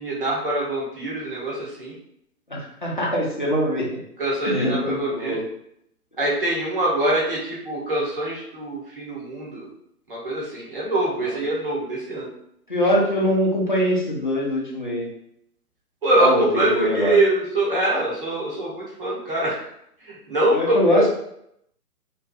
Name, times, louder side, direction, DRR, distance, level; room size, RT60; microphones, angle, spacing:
voice 1, 0.0-1.9 4.2-5.4 6.2-9.7 10.1-12.3 16.0-19.6 20.3-21.1, right 1 dB, 35° right, -5 dB, 0.9 m, -23 dB
voice 2, 2.5-4.0 4.4-5.4 11.2-11.4 12.7-15.1 16.2-17.2 20.5-21.0, equal, 35° left, -4 dB, 0.4 m, -23 dB
2.5 x 2.2 x 2.3 m, 0.73 s
figure-of-eight pair, 135°, 47 cm